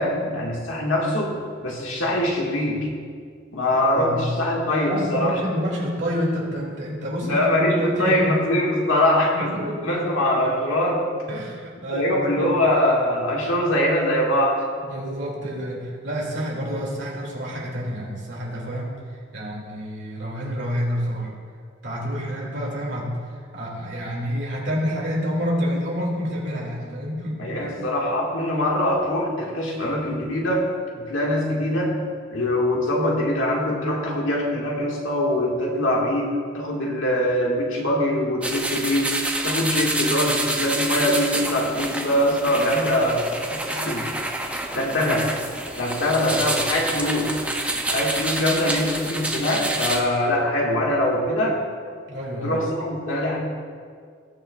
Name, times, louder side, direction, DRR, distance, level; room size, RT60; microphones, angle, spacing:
voice 1, 0.0-1.4 1.6-2.9 3.5-5.4 7.2-11.1 11.9-14.6 27.4-30.7 31.0-32.0 32.3-39.1 39.4-44.1 44.7-45.3 45.7-47.4 47.9-51.6 52.4-53.4, left 1 dB, 90° left, -2 dB, 1.9 m, -23 dB
voice 2, 3.9-4.5 4.9-8.4 8.9-9.0 9.4-9.8 11.3-12.6 14.8-18.9 19.3-21.3 21.8-27.7 52.1-52.6, equal, 60° right, -3 dB, 2.6 m, -28 dB
sound 1, 38.4-50.0, right 2 dB, 5° right, 0.6 m, -28 dB
19.5 x 6.6 x 2.5 m, 2.1 s
head